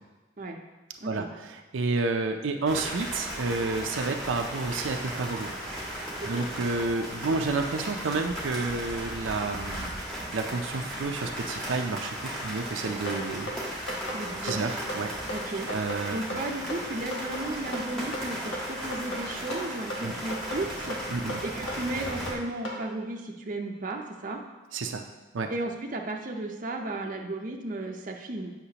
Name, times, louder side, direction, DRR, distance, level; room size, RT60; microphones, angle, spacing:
voice 1, 1.0-5.5 6.0-9.9 10.3-13.5 13.8-14.0 14.4-15.1 15.7-16.4 20.0-20.1 21.1-21.4 24.7-25.0 25.3-25.5, right 3 dB, 85° right, 4 dB, 0.5 m, -30 dB
Rain and thunder under our plastic roof, 2.7-22.3, equal, 5° left, 1.4 m, -36 dB
sound 1, 13.1-22.8, left 1 dB, 80° left, 1.4 m, -36 dB
voice 2, 14.1-14.7 15.3-15.7 16.1-24.4 25.5-28.5, right 2 dB, 40° right, 1 dB, 0.6 m, -35 dB
8.1 x 5.8 x 2.9 m, 1.2 s
head